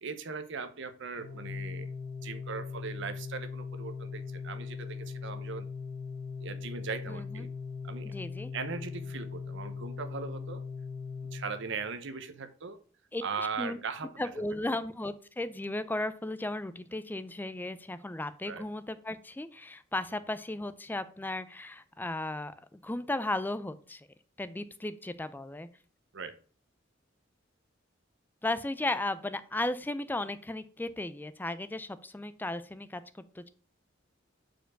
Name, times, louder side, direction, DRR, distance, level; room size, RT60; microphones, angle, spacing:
voice 1, 0.0-1.9 2.2-5.7 6.4-7.5 7.8-8.2 8.5-10.6 11.3-12.8 13.2-14.1 18.4-18.7 26.1-26.4, right 5 dB, 65° right, 11 dB, 0.7 m, -39 dB
Organ, 1.1-12.0, left 5 dB, 90° left, 1.1 m, -40 dB
voice 2, 7.1-7.5 8.0-8.5 13.1-13.2 13.6-13.8 14.2-24.1 24.4-25.7 28.4-33.0 33.4-33.5, left 2 dB, 10° left, 13 dB, 0.4 m, -35 dB
4.6 x 4.6 x 5.9 m, 0.41 s
head